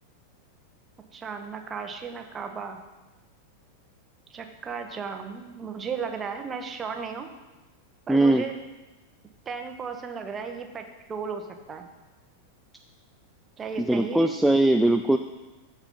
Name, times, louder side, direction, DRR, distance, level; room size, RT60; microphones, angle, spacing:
voice 1, 1.1-2.8 4.3-7.3 8.1-8.5 9.5-11.9 13.6-14.3, right 6 dB, 20° right, 5 dB, 1.2 m, -35 dB
voice 2, 8.1-8.4 13.8-15.2, right 1 dB, 5° right, 6 dB, 0.4 m, -20 dB
14.5 x 4.9 x 5.5 m, 1.1 s
figure-of-eight pair, 90°, 0 cm